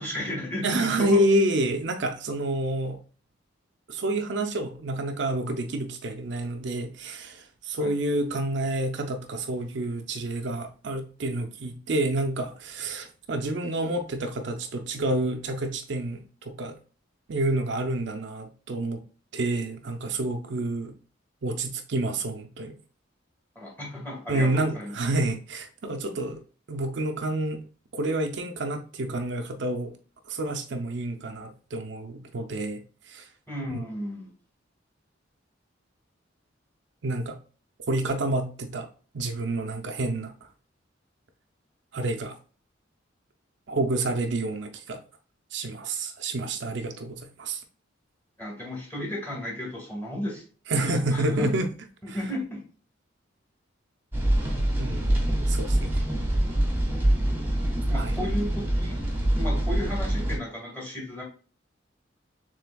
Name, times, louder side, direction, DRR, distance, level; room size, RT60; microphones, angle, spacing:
voice 1, 0.0-1.2 7.8-7.9 23.6-24.9 33.5-34.3 48.4-50.4 50.9-51.5 52.1-52.6 57.9-59.0 59.4-61.2, left 1 dB, 10° left, -3 dB, 1.8 m, -33 dB
voice 2, 0.6-3.0 3.9-16.7 17.3-19.0 19.3-20.9 21.4-22.7 24.3-26.4 26.7-27.6 27.9-29.9 30.3-33.3 33.7-33.8 37.0-37.4 37.9-38.9 39.1-40.5 41.9-42.4 43.7-45.0 45.5-47.6 50.7-51.7 52.1-52.2 54.8-56.0 57.9-58.1 59.2-59.4, right 2 dB, 65° right, 6 dB, 0.5 m, -29 dB
sound 1, 54.1-60.4, right 1 dB, 10° right, 1.2 m, -25 dB
6.7 x 3.3 x 2.2 m, 0.38 s
head